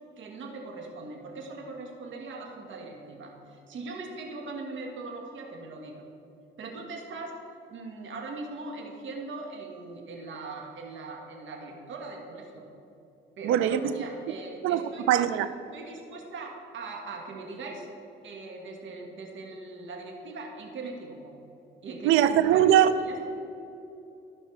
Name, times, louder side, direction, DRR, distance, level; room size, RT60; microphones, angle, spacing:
voice 1, 0.2-5.9 6.6-7.4 7.7-12.6 13.4-15.3 15.7-17.9 18.2-21.4 21.8-22.8 23.0-23.2, right 3 dB, 70° right, 1 dB, 1.7 m, -40 dB
voice 2, 13.4-13.9 14.6-14.8 15.1-15.5 22.0-22.9, right 11 dB, 90° right, 12 dB, 0.5 m, -21 dB
16.0 x 5.5 x 3.3 m, 2.8 s
cardioid pair, 90°, 20 cm